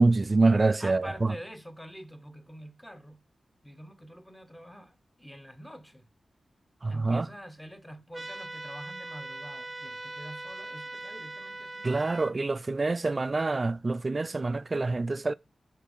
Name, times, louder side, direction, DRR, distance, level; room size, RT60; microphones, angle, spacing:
voice 1, 0.0-1.3 6.8-7.3 11.8-15.3, right 3 dB, 40° right, 0.3 m, -26 dB
voice 2, 0.8-3.2 3.6-6.1 6.9-11.9, equal, 10° left, 1.0 m, -46 dB
sound 1, 8.1-12.3, right 2 dB, 25° right, 0.9 m, -41 dB
6.8 x 3.2 x 5.4 m
cardioid pair, 70°, 0 cm